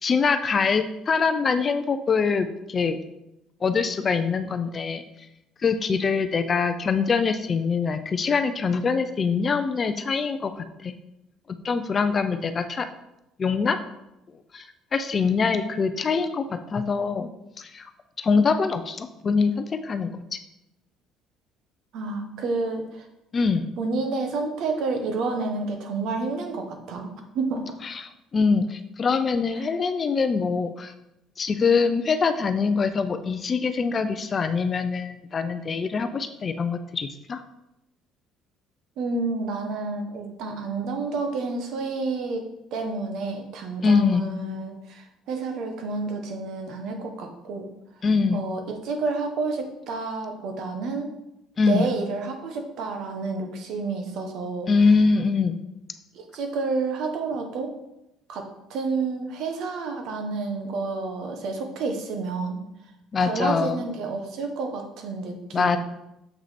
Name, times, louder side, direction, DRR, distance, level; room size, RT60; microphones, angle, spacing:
voice 1, 0.0-3.0 3.6-5.0 5.6-10.9 11.6-12.9 13.4-13.8 14.5-14.6 14.9-17.3 17.6-17.9 18.2-20.4 23.3-23.7 27.8-28.1 28.3-30.9 31.4-37.4 43.8-44.2 48.0-48.4 51.6-51.9 54.7-55.6 63.1-63.8 65.5-65.8, left 5 dB, 30° left, 9 dB, 0.5 m, -23 dB
voice 2, 21.9-23.0 23.8-27.6 29.6-29.7 39.0-42.4 42.7-47.7 48.3-51.1 51.7-54.7 56.1-57.7 58.3-62.6 63.2-65.8, right 3 dB, 65° right, 4 dB, 1.4 m, -30 dB
7.4 x 6.0 x 4.2 m, 0.88 s
cardioid pair, 150°, 0 cm